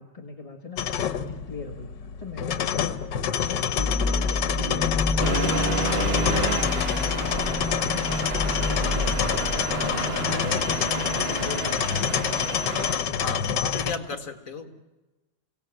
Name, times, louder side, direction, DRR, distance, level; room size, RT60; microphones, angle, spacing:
voice 1, 0.0-9.4 9.7-12.3 12.6-13.4 14.1-14.2, left 3 dB, 20° left, 2 dB, 1.7 m, -40 dB
sound 1, 0.8-14.0, left 8 dB, 85° left, 1.6 m, -27 dB
sound 2, 3.8-11.7, left 3 dB, 5° right, 1.1 m, -30 dB
Accelerating revving vroom, 5.2-13.0, right 4 dB, 35° right, 1.5 m, -31 dB
voice 2, 13.2-14.7, left 4 dB, 50° left, 6 dB, 2.3 m, -34 dB
24.0 x 17.5 x 9.1 m, 1.1 s
omnidirectional pair, 1.9 m